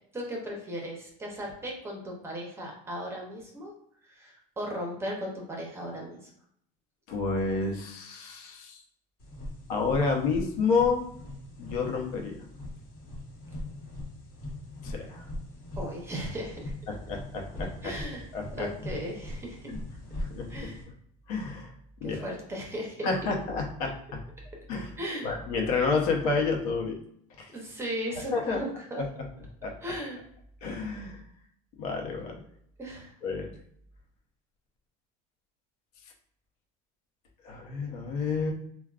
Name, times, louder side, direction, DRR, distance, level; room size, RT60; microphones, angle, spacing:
voice 1, 0.1-3.7 4.0-6.3 15.8-16.7 17.8-19.7 20.5-20.9 22.0-23.1 25.0-25.3 27.5-29.0 29.8-30.2 32.8-33.1, equal, 15° right, -1 dB, 0.7 m, -37 dB
voice 2, 7.1-8.8 9.7-11.1 11.6-12.4 14.8-15.2 16.9-17.9 18.3-18.7 19.7-19.8 20.2-20.7 21.3-21.7 22.0-22.2 23.0-24.2 24.7-24.9 25.2-27.0 27.4-27.5 28.3-28.6 29.0-29.1 29.6-29.7 30.6-31.2 31.8-32.4 33.2-33.5 37.4-38.5, left 4 dB, 80° left, 1 dB, 0.8 m, -29 dB
sound 1, 9.2-20.8, left 1 dB, 55° left, 1.2 m, -40 dB
3.5 x 2.2 x 2.4 m, 0.68 s
cardioid pair, 140°, 18 cm